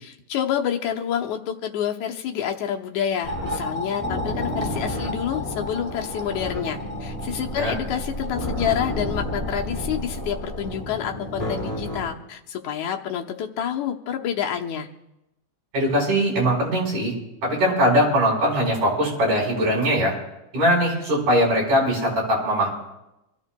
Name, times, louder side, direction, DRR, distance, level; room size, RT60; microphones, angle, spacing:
voice 1, 0.0-14.9, left 9 dB, 75° left, 3 dB, 2.1 m, -28 dB
sound 1, 3.2-12.1, left 1 dB, 5° left, 4.2 m, -30 dB
voice 2, 15.7-17.1 17.4-20.1 20.5-22.7, equal, 70° right, -4 dB, 6.2 m, -21 dB
26.5 x 14.5 x 2.2 m, 0.94 s
omnidirectional pair, 3.5 m